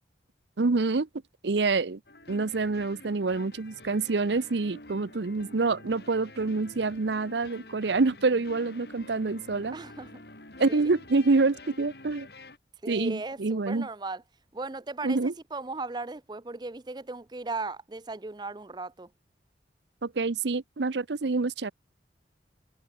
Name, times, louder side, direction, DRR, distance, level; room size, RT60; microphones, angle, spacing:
voice 1, 0.6-1.1 1.4-2.0 2.3-9.8 10.6-12.3 12.9-13.9 15.0-15.3 20.0-21.7, right 3 dB, 80° right, 0.7 m, -27 dB
sound 1, 2.1-12.6, left 2 dB, 65° left, 4.3 m, -48 dB
voice 2, 9.7-10.2 10.6-11.0 12.8-14.2 14.5-19.1, right 3 dB, 25° right, 0.6 m, -37 dB
head